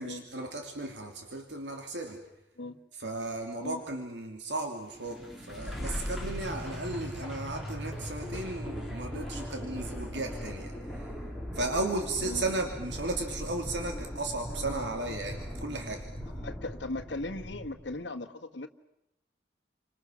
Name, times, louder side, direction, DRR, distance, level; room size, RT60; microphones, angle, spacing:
voice 1, 0.0-2.2 2.9-11.1 11.5-16.1, right 2 dB, 75° right, 4 dB, 2.7 m, -35 dB
sound 1, 4.9-18.0, equal, ahead, 4.4 m, -39 dB
voice 2, 16.3-18.7, left 2 dB, 80° left, 7 dB, 1.5 m, -38 dB
30.0 x 26.0 x 6.3 m, 0.87 s
head